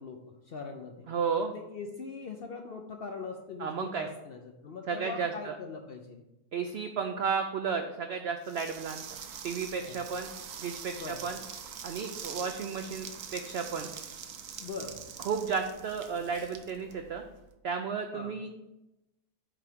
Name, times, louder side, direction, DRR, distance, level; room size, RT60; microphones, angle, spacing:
voice 1, 0.0-1.1 1.5-6.2 9.8-10.0 10.9-11.2 14.6-15.0 18.1-18.4, left 4 dB, 65° left, 4 dB, 0.6 m, -41 dB
voice 2, 1.1-1.5 3.6-4.1 4.9-5.5 6.5-9.0 9.4-10.3 10.6-11.4 11.8-13.9 15.2-17.2 17.6-18.5, right 6 dB, 80° right, 5 dB, 0.5 m, -33 dB
sound 1, 8.4-17.4, right 7 dB, 65° right, 1.0 m, -44 dB
5.6 x 4.7 x 5.1 m, 0.93 s
omnidirectional pair, 1.6 m